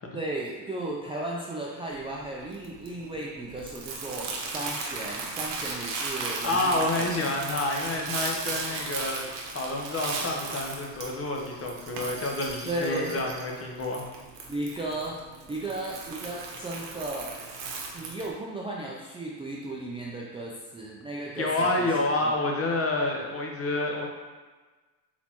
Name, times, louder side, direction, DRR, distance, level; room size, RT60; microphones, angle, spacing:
voice 1, 0.1-7.3 12.6-13.2 14.5-15.2 15.5-17.3 17.9-21.5 21.8-21.9 22.2-22.3, right 2 dB, 10° right, -4 dB, 0.5 m, -35 dB
Crumpling crinkling, 1.9-18.3, right 3 dB, 60° right, 1.1 m, -37 dB
voice 2, 6.4-14.1 21.4-24.1, left 2 dB, 30° left, 1 dB, 0.9 m, -28 dB
4.1 x 4.0 x 2.9 m, 1.3 s
supercardioid pair, 85°, 49 cm